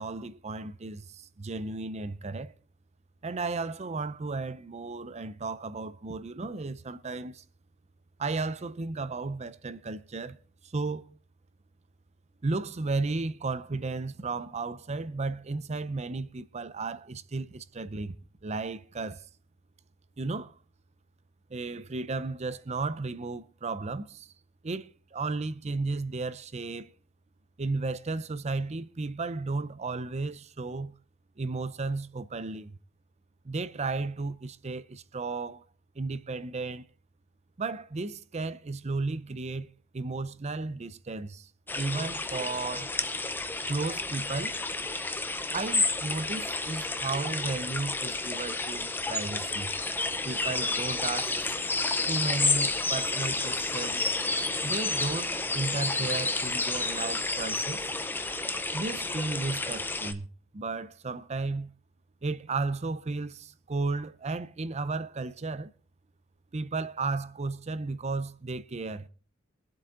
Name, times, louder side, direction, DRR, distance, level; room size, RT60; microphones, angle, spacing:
voice 1, 0.0-2.5 3.2-7.4 8.2-10.4 10.6-11.1 12.4-18.2 18.4-19.3 20.2-20.5 21.5-24.3 24.6-26.9 27.6-30.9 31.4-32.8 33.4-35.6 36.0-36.8 37.6-39.7 39.9-43.0 43.7-44.6 45.5-49.7 50.2-51.5 52.1-54.0 54.6-57.9 58.7-60.3 60.5-61.7 62.2-65.7 66.5-69.1, right 3 dB, 35° right, 0.5 m, -34 dB
sound 1, 41.7-60.1, left 3 dB, 10° left, 0.7 m, -30 dB
23.5 x 7.8 x 3.7 m
head